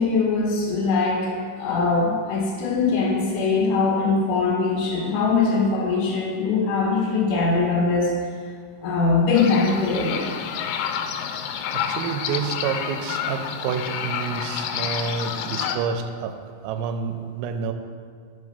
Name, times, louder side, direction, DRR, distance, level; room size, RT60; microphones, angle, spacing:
voice 1, 0.0-8.1 8.8-10.3, left 4 dB, 70° left, -3 dB, 3.5 m, -22 dB
sound 1, 9.3-15.8, left 8 dB, 90° left, 3.3 m, -29 dB
voice 2, 11.7-17.7, right 6 dB, 85° right, 6 dB, 3.2 m, -29 dB
7.2 x 4.9 x 6.6 m, 2.2 s
omnidirectional pair, 5.9 m